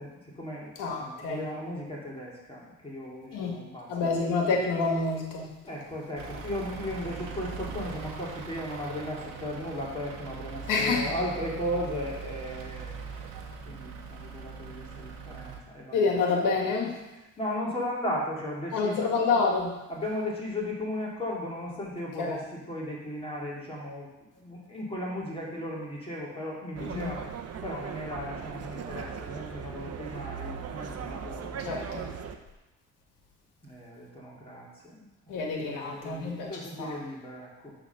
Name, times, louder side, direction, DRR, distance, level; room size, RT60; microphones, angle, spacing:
voice 1, 0.0-3.9 5.6-13.3 13.7-16.1 17.4-19.1 19.9-24.1 24.4-27.3 27.6-32.1 33.6-37.7, left 1 dB, 15° left, -5 dB, 2.5 m, -36 dB
voice 2, 0.8-1.4 3.3-3.6 3.9-5.5 10.7-11.1 15.9-17.0 18.7-19.8 22.2-22.4 26.8-27.1 31.6-32.1 35.3-36.5 36.8-37.0, left 4 dB, 80° left, 1 dB, 1.8 m, -28 dB
Truck / Idling, 6.2-15.6, right 5 dB, 90° right, 1.0 m, -41 dB
sound 1, 26.8-32.4, right 7 dB, 50° right, 0.8 m, -38 dB
9.2 x 3.8 x 5.9 m, 1.0 s
cardioid pair, 80°, 31 cm